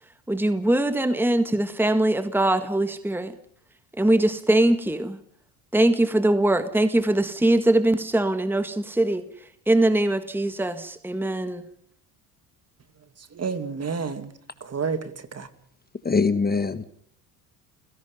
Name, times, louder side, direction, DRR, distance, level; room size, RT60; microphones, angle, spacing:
voice 1, 0.3-3.4 3.9-5.2 5.7-11.6, right 1 dB, 5° right, 10 dB, 1.7 m, -22 dB
voice 2, 13.2-15.5, right 5 dB, 35° right, 10 dB, 2.5 m, -31 dB
voice 3, 16.0-16.8, left 4 dB, 20° left, 12 dB, 1.4 m, -22 dB
29.5 x 17.0 x 5.4 m, 0.63 s
supercardioid pair, 75°, 44 cm